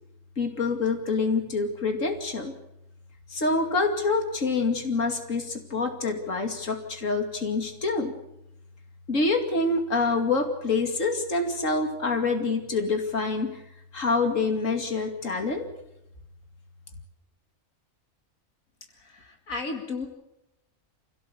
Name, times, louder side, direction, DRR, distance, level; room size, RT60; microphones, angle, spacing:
voice 1, 0.4-2.6 3.3-8.1 9.1-13.6 13.9-15.7, left 3 dB, 70° left, 5 dB, 2.9 m, -26 dB
voice 2, 19.0-20.1, left 3 dB, 85° left, 3 dB, 2.6 m, -34 dB
27.0 x 17.0 x 8.3 m, 0.87 s
omnidirectional pair, 1.4 m